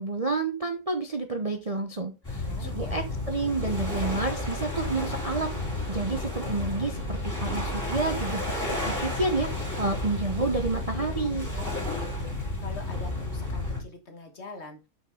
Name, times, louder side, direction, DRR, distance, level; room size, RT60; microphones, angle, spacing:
voice 1, 0.0-9.5 9.8-11.5, right 3 dB, 30° right, 5 dB, 0.7 m, -30 dB
sound 1, 2.2-13.8, left 2 dB, 10° left, 3.3 m, -32 dB
voice 2, 2.4-3.0 11.5-12.1 12.6-14.8, left 2 dB, 45° left, 5 dB, 1.7 m, -43 dB
sound 2, 2.4-12.3, right 7 dB, 50° right, 2.7 m, -46 dB
7.3 x 5.8 x 3.8 m, 0.27 s
omnidirectional pair, 1.7 m